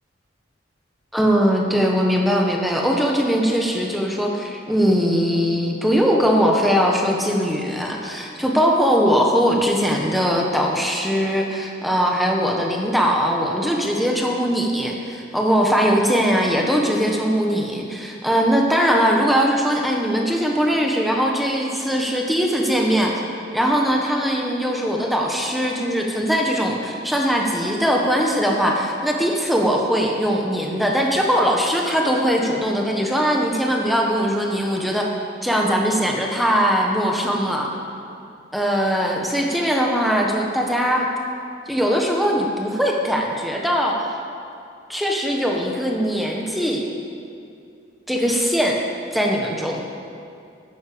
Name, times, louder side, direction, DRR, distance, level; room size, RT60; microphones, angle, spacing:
voice 1, 1.1-23.2 23.5-35.1 35.4-37.7 38.5-41.1 41.7-44.0 44.9-46.8 48.1-48.8 49.1-49.8, equal, ahead, -1 dB, 1.4 m, -20 dB
12.5 x 10.5 x 6.9 m, 2.5 s
head